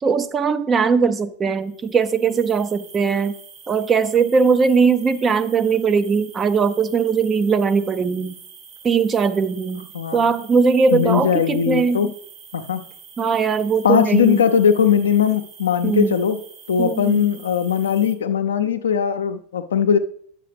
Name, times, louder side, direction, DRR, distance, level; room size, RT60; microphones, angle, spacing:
voice 1, 0.0-3.3 3.7-8.4 8.8-12.1 13.2-14.4 15.8-16.2 16.8-17.3, right 5 dB, 25° right, 11 dB, 0.7 m, -20 dB
sound 1, 1.6-18.1, right 6 dB, 45° right, 2.5 m, -45 dB
voice 2, 9.9-10.3 10.9-12.1 12.5-12.8 13.8-16.4 16.7-20.0, left 8 dB, 85° left, 9 dB, 0.6 m, -19 dB
9.4 x 7.6 x 3.4 m, 0.63 s
hypercardioid pair, 95°, 0 cm